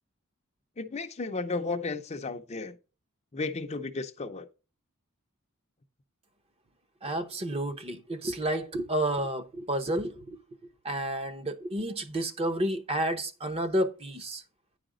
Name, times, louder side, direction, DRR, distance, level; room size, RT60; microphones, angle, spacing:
voice 1, 0.8-2.8 3.3-4.5, left 3 dB, 30° left, 0.6 m, -34 dB
voice 2, 7.0-10.4 10.8-14.4, right 1 dB, 25° right, 0.8 m, -30 dB
9.7 x 5.0 x 3.8 m
head